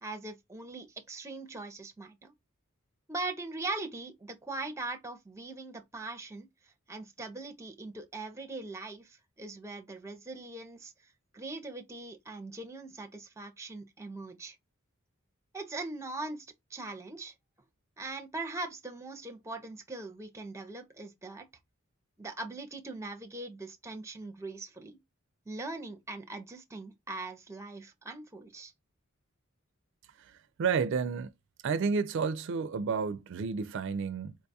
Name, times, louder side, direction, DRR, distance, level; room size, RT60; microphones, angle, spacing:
voice 1, 0.0-2.3 3.1-6.5 6.9-10.9 11.3-14.6 15.5-16.5 16.7-17.3 18.0-21.5 22.2-25.0 25.5-28.7, right 2 dB, 15° right, 0.6 m, -41 dB
voice 2, 30.2-31.3 31.6-34.4, right 5 dB, 65° right, 0.4 m, -31 dB
4.5 x 2.2 x 2.6 m
head